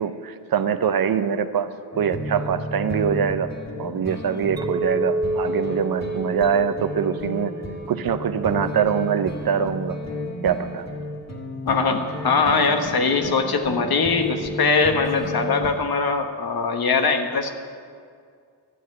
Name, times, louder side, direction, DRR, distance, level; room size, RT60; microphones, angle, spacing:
voice 1, 0.0-3.5 3.8-7.5 7.9-10.0 10.4-10.9, right 7 dB, 60° right, 10 dB, 0.8 m, -23 dB
sound 1, 1.9-15.7, left 1 dB, 40° left, 2.2 m, -33 dB
Chink clink, 4.6-9.1, right 1 dB, 10° right, 0.7 m, -30 dB
voice 2, 11.7-17.5, left 4 dB, 60° left, 6 dB, 1.4 m, -21 dB
12.0 x 7.4 x 9.7 m, 2.2 s
cardioid pair, 80°, 41 cm